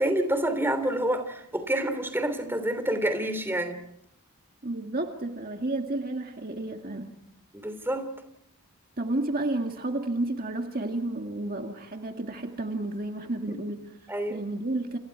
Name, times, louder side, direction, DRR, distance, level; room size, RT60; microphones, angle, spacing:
voice 1, 0.0-3.8 7.5-8.1 14.1-14.4, right 1 dB, 10° right, 8 dB, 3.2 m, -28 dB
voice 2, 4.6-7.1 9.0-14.0 14.3-15.0, right 2 dB, 40° right, 3 dB, 2.0 m, -31 dB
30.0 x 29.0 x 4.7 m, 0.75 s
head